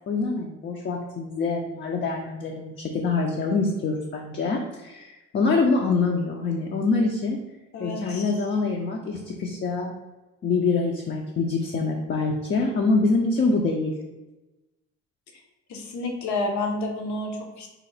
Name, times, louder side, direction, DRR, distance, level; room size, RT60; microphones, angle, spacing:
voice 1, 0.1-7.4 7.8-10.0 10.4-13.9, left 3 dB, 40° left, 1 dB, 0.5 m, -25 dB
voice 2, 7.7-8.2 15.7-17.7, left 2 dB, 70° left, 2 dB, 0.8 m, -29 dB
4.1 x 2.0 x 3.9 m, 1.1 s
cardioid pair, 90°, 30 cm